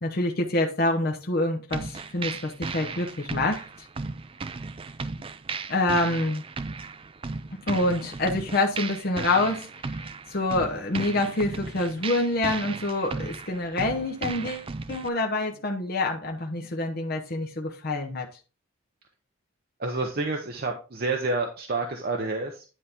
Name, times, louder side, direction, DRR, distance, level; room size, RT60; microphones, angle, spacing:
voice 1, 0.0-3.6 5.7-6.4 7.7-10.0 10.3-18.3, left 2 dB, 45° left, 0.9 m, -26 dB
sound 1, 1.7-15.1, right 4 dB, 25° right, 0.3 m, -36 dB
voice 2, 19.8-22.6, right 3 dB, 45° right, 0.8 m, -29 dB
10.0 x 4.2 x 3.6 m
head